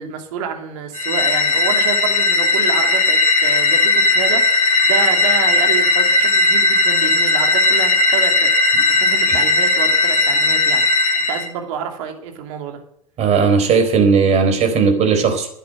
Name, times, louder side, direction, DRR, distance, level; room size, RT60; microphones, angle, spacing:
voice 1, 0.0-10.8 11.3-12.8, right 7 dB, 60° right, 5 dB, 2.8 m, -28 dB
sound 1, 0.9-11.5, left 2 dB, 80° left, 2.3 m, -16 dB
voice 2, 13.2-15.5, right 5 dB, 35° right, 6 dB, 4.1 m, -16 dB
12.5 x 10.5 x 7.8 m, 0.72 s
figure-of-eight pair, 90°, 19 cm